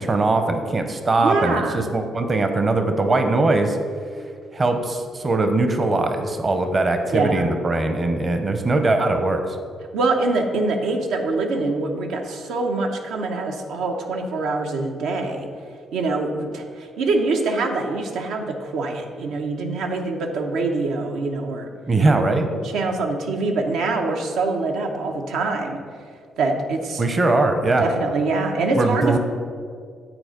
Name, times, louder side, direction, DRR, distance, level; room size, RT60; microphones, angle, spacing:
voice 1, 0.0-3.8 4.5-9.4 21.9-22.5 27.0-27.9 28.7-29.2, right 2 dB, 35° right, 6 dB, 0.8 m, -21 dB
voice 2, 1.2-1.8 7.1-7.5 9.9-15.5 15.9-21.7 22.0-22.2 22.6-25.8 26.4-27.0 27.8-29.2, right 3 dB, 85° right, 3 dB, 0.9 m, -24 dB
9.0 x 4.3 x 5.1 m, 2.1 s
cardioid pair, 90°, 0 cm